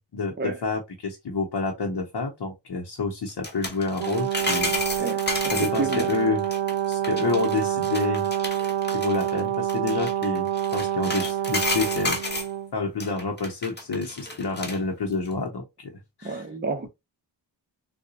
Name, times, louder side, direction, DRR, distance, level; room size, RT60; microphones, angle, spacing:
voice 1, 0.0-5.2 5.5-6.4 6.9-8.7 8.9-12.2 12.7-15.9 16.2-16.5, left 4 dB, 65° left, 0.8 m, -29 dB
sound 1, 3.3-12.5 13.0-14.8 15.1-15.3, left 2 dB, 25° left, 1.0 m, -32 dB
Brass instrument, 4.0-12.7, right 11 dB, 85° right, 0.6 m, -27 dB
voice 2, 16.2-16.9, right 3 dB, 25° right, 0.8 m, -29 dB
3.7 x 2.3 x 2.7 m
cardioid pair, 45°, 43 cm